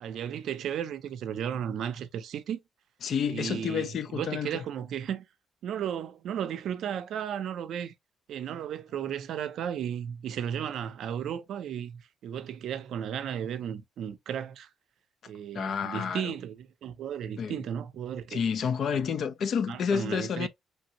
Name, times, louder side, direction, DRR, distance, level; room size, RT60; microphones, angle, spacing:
voice 1, 0.0-2.6 3.3-5.2 5.6-7.9 8.3-14.7 15.3-18.4 18.9-19.0 19.7-20.5, right 9 dB, 70° right, 0.5 m, -34 dB
voice 2, 3.0-4.6 15.5-16.3 17.4-17.6 18.3-20.5, left 7 dB, 55° left, 0.4 m, -30 dB
3.2 x 2.7 x 2.8 m
cardioid pair, 135°, 0 cm